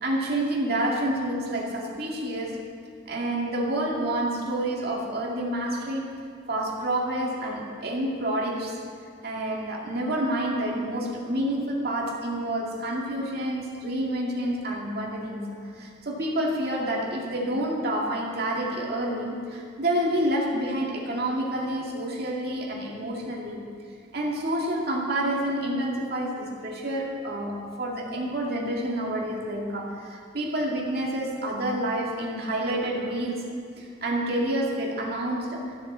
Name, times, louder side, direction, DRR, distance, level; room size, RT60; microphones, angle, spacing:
voice 1, 0.0-2.6 3.1-6.1 6.5-8.8 9.2-23.7 24.1-33.4 33.8-35.8, right 1 dB, 55° right, -2 dB, 2.3 m, -28 dB
13.5 x 7.3 x 7.4 m, 2.2 s
head